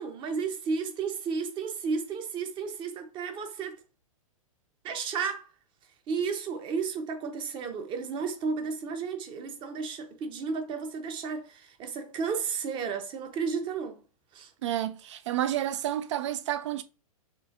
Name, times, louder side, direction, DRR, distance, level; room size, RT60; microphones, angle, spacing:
voice 1, 0.0-3.8 4.8-5.5 6.1-14.0 14.3-14.5, right 5 dB, 25° right, 0.8 m, -33 dB
voice 2, 14.6-16.8, right 12 dB, 55° right, 0.5 m, -30 dB
6.7 x 2.5 x 2.5 m
figure-of-eight pair, 105°, 18 cm